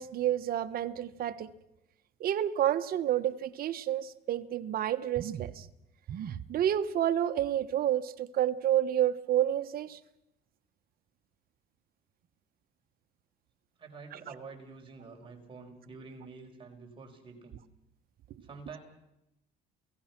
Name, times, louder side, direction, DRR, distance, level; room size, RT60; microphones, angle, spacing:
voice 1, 0.0-1.5 2.2-5.7 6.1-10.0 14.1-14.2, right 11 dB, 60° right, 11 dB, 1.3 m, -29 dB
voice 2, 13.8-17.6 18.4-18.8, right 4 dB, 30° right, 1 dB, 5.4 m, -48 dB
28.5 x 18.0 x 6.0 m, 0.86 s
cardioid pair, 110°, 17 cm